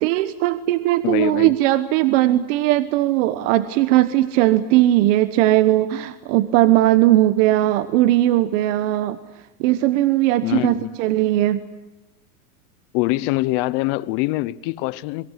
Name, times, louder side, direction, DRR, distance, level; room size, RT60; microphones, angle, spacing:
voice 1, 0.0-9.2 9.6-11.6, right 15 dB, 55° right, 1.2 m, -18 dB
voice 2, 1.0-1.5 10.4-10.9 12.9-15.3, left 19 dB, 45° left, 0.9 m, -24 dB
26.5 x 23.5 x 8.3 m
supercardioid pair, 145°, 44 cm